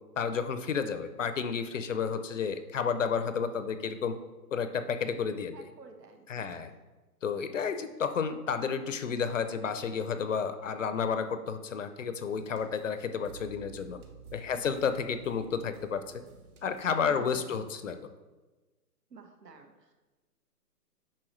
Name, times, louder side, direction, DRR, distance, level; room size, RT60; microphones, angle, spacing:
voice 1, 0.2-4.1 4.5-5.6 6.3-6.7 7.2-14.0 14.3-16.2 16.6-18.0, left 6 dB, 55° left, 10 dB, 0.6 m, -31 dB
voice 2, 5.5-6.7 14.5-14.7 17.0-17.6 19.1-20.0, right 5 dB, 85° right, 5 dB, 1.4 m, -51 dB
sound 1, 12.3-17.4, right 5 dB, 60° right, 1.0 m, -53 dB
8.7 x 5.7 x 3.1 m, 1.2 s
hypercardioid pair, 160°, 48 cm